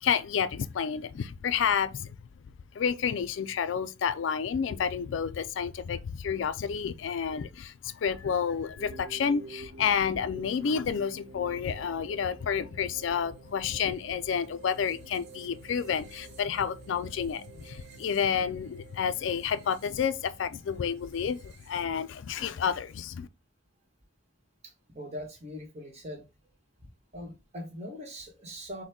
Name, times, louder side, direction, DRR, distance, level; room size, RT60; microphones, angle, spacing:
voice 1, 0.0-2.2 2.7-23.3, left 7 dB, 65° left, 0.4 m, -30 dB
sound 1, 8.8-22.3, right 2 dB, 60° right, 1.0 m, -49 dB
voice 2, 24.6-26.3 27.1-28.8, equal, 35° right, 1.3 m, -41 dB
6.1 x 2.2 x 3.5 m
head